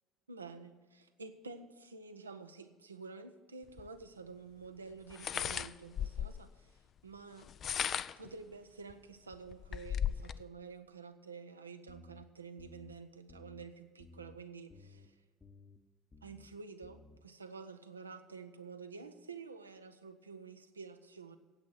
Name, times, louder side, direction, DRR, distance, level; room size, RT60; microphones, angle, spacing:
voice 1, 0.3-6.7 7.0-7.5 8.2-15.1 16.2-21.4, right 4 dB, 85° right, 8 dB, 0.6 m, -50 dB
sound 1, 3.8-3.9 5.1-6.5 7.4-8.3 8.9-9.0 9.3-10.4, left 9 dB, 45° left, 0.4 m, -36 dB
sound 2, 11.9-12.2 12.6-12.9 13.3-13.6 14.0-14.4 14.7-15.1 15.4-15.8 16.1-16.5 16.8-17.2, left 3 dB, 25° left, 0.9 m, -56 dB
9.0 x 8.3 x 8.9 m, 1.4 s
figure-of-eight pair, 60°, 0 cm